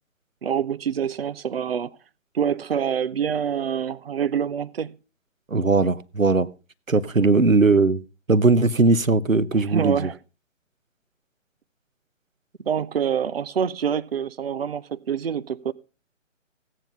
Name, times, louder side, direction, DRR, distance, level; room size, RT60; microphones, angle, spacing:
voice 1, 0.4-2.0 2.3-4.9 9.6-10.2 12.7-15.7, right 8 dB, 50° right, 0.8 m, -26 dB
voice 2, 5.5-6.5 6.9-8.0 8.3-10.1, right 3 dB, 85° right, 1.0 m, -19 dB
16.5 x 9.3 x 5.5 m
figure-of-eight pair, 140°, 39 cm